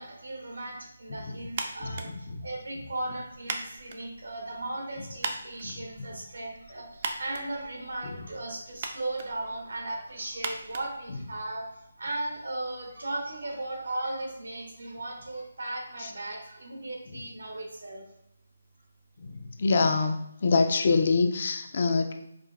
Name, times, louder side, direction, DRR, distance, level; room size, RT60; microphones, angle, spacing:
voice 1, 0.0-18.0, right 2 dB, 80° right, 0 dB, 1.1 m, -37 dB
sound 1, 1.5-11.7, right 4 dB, 40° right, 0.4 m, -41 dB
voice 2, 1.8-2.2 16.0-16.1 19.2-20.2 20.4-22.1, left 4 dB, 50° left, 6 dB, 0.4 m, -25 dB
4.8 x 2.3 x 2.4 m, 0.78 s
hypercardioid pair, 160°, 0 cm